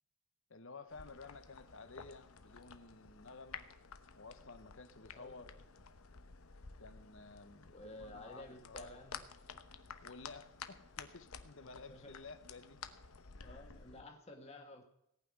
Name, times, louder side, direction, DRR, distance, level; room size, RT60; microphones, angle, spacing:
voice 1, 0.5-3.7 4.2-5.5 6.8-9.0 10.0-12.8 13.3-13.7, left 3 dB, 60° left, 11 dB, 1.1 m, -53 dB
sound 1, 0.9-14.0, left 6 dB, 75° left, 1.0 m, -53 dB
voice 2, 5.1-5.6 7.7-9.2 9.5-9.6 11.9-12.1 13.4-14.8, left 2 dB, 30° left, 2 dB, 1.7 m, -53 dB
18.0 x 6.0 x 9.5 m, 0.78 s
head